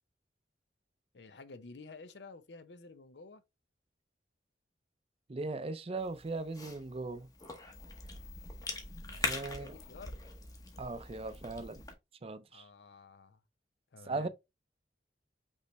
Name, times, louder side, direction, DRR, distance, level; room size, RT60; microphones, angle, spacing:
voice 1, 1.1-3.4 9.1-10.2 12.5-13.4 13.9-14.3, left 3 dB, 75° left, 0.6 m, -52 dB
voice 2, 5.3-7.3 9.2-9.7 10.8-11.8 12.2-12.7 14.1-14.3, right 3 dB, 35° right, 0.5 m, -38 dB
Cough / Chewing mastication, 6.0-11.9, left 3 dB, 20° left, 0.9 m, -42 dB
5.4 x 3.2 x 3.1 m
head